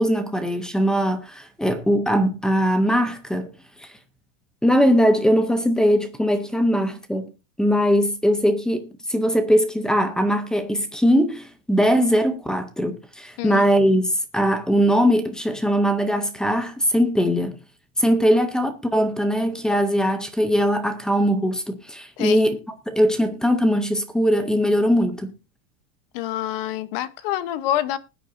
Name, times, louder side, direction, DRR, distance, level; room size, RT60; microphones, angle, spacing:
voice 1, 0.0-3.5 4.6-7.3 7.6-17.6 18.0-22.6 22.9-25.3, equal, ahead, 0.5 m, -20 dB
voice 2, 13.4-13.7 22.2-22.4 26.1-28.0, left 12 dB, 40° left, 0.9 m, -26 dB
20.0 x 9.4 x 2.6 m
supercardioid pair, 170°, 41 cm